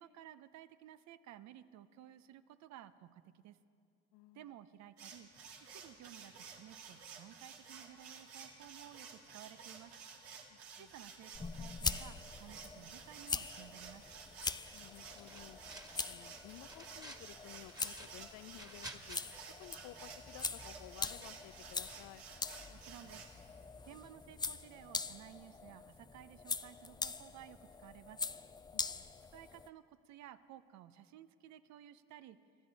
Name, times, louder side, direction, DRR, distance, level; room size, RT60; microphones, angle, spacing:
voice 1, 0.0-3.6 4.3-5.3 5.7-9.9 10.8-14.1 22.7-23.2 23.8-28.2 29.3-32.4, right 11 dB, 65° right, 13 dB, 0.8 m, -55 dB
voice 2, 4.1-4.5 10.5-10.9 14.7-15.6 16.1-19.2 19.6-22.2 28.7-29.1, left 16 dB, 70° left, 17 dB, 0.5 m, -55 dB
sound 1, 5.0-23.3, right 6 dB, 90° right, 2.0 m, -53 dB
sound 2, 11.3-29.7, left 4 dB, 15° left, 0.4 m, -43 dB
sound 3, 15.1-16.1 16.5-17.3 17.6-19.2, right 1 dB, 10° right, 1.7 m, -52 dB
24.5 x 13.5 x 4.1 m, 2.4 s
supercardioid pair, 75°, 30 cm